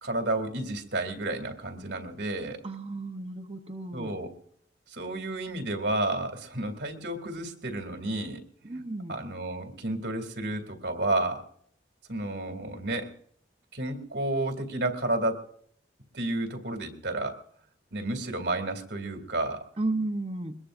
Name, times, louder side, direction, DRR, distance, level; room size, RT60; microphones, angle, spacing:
voice 1, 0.0-2.6 3.9-4.3 4.9-8.8 9.1-11.4 12.1-13.1 13.7-15.5 16.1-17.4 17.9-19.7, right 2 dB, 70° right, 4 dB, 2.6 m, -31 dB
voice 2, 2.6-4.1 8.6-9.2 19.8-20.6, right 2 dB, 30° right, 1 dB, 0.8 m, -33 dB
22.5 x 20.5 x 2.6 m, 0.65 s
head